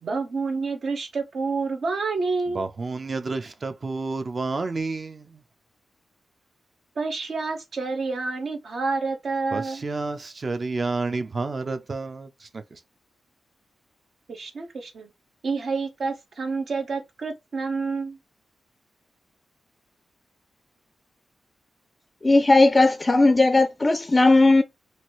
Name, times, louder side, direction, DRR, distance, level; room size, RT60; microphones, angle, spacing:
voice 1, 0.0-2.7 7.0-9.8 14.3-15.1 15.4-18.2, right 4 dB, 70° right, 0.9 m, -28 dB
voice 2, 2.5-5.3 9.5-12.3 12.5-12.6, right 3 dB, 45° right, 0.6 m, -30 dB
voice 3, 22.2-24.6, left 2 dB, 30° left, 0.4 m, -17 dB
2.8 x 2.6 x 3.0 m
cardioid pair, 60°, 0 cm